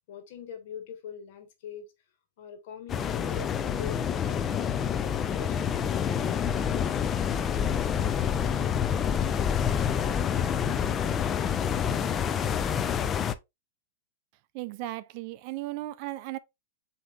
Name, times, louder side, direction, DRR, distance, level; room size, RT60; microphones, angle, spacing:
voice 1, 0.1-1.9 2.4-5.7, left 7 dB, 60° left, 1.4 m, -43 dB
sound 1, 2.9-13.3, left 8 dB, 25° left, 0.4 m, -27 dB
voice 2, 14.5-16.4, right 16 dB, 50° right, 0.4 m, -36 dB
7.8 x 2.8 x 2.4 m
hypercardioid pair, 125°, 0 cm